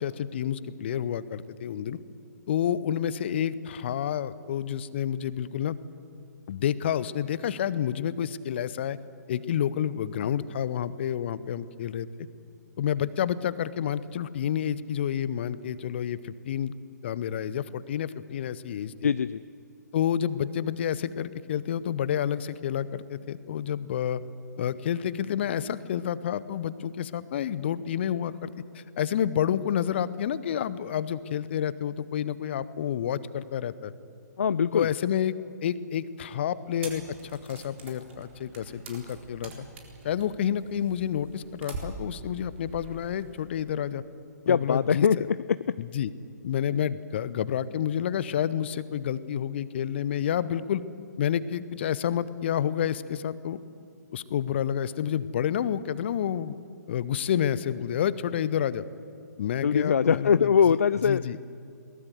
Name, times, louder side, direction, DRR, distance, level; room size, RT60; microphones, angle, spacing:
voice 1, 0.0-2.0 2.5-5.8 6.5-9.0 9.3-12.1 12.8-16.7 17.0-19.1 19.9-24.2 24.6-33.9 34.7-39.5 40.0-44.0 44.4-45.3 45.8-46.1 46.4-50.8 51.2-53.6 54.1-56.5 56.9-58.8 59.4-60.8 61.0-61.4, left 9 dB, 40° left, 17 dB, 0.9 m, -29 dB
voice 2, 19.0-19.4 34.4-34.9 44.5-45.6 59.6-61.2, left 7 dB, 55° left, 16 dB, 0.4 m, -22 dB
sound 1, 36.8-43.5, right 3 dB, 40° right, 3.9 m, -44 dB
22.0 x 19.0 x 8.0 m, 2.5 s
figure-of-eight pair, 130°, 10 cm